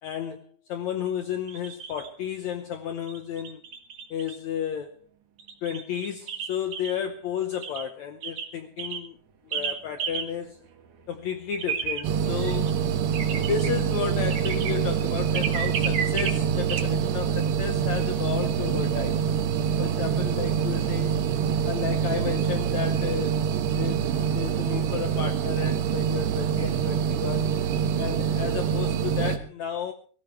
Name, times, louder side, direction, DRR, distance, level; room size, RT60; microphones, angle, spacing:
voice 1, 0.0-3.6 4.1-5.1 5.6-9.2 9.4-10.6 11.1-12.7 13.3-19.2 19.8-21.2 21.6-23.4 23.8-27.5 28.0-29.9, left 8 dB, 85° left, 7 dB, 1.6 m, -32 dB
sound 1, 1.5-2.1 3.1-4.4 5.4-6.9 7.6-7.8 8.2-8.5 8.8-9.0 9.5-9.7 10.0-10.2 10.7-10.8 11.0-11.1 11.2-16.8, right 7 dB, 55° right, 2.6 m, -32 dB
sound 2, 12.0-29.4, right 8 dB, 85° right, 3.4 m, -25 dB
23.5 x 14.5 x 3.2 m, 0.42 s
omnidirectional pair, 4.7 m